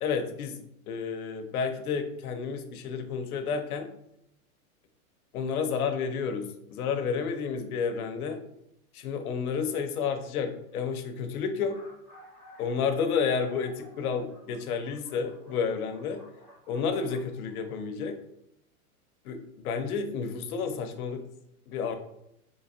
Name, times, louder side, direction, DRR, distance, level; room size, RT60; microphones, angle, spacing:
voice 1, 0.0-0.6 0.9-3.9 5.3-8.4 8.9-11.8 12.6-16.2 16.7-18.2 19.2-21.2 21.7-22.0, left 6 dB, 80° left, 6 dB, 0.7 m, -31 dB
sound 1, 9.9-10.0 10.7-10.8 11.0-11.1 11.5-17.8, right 1 dB, 10° right, 0.4 m, -55 dB
3.8 x 2.8 x 2.6 m, 0.78 s
supercardioid pair, 170°, 44 cm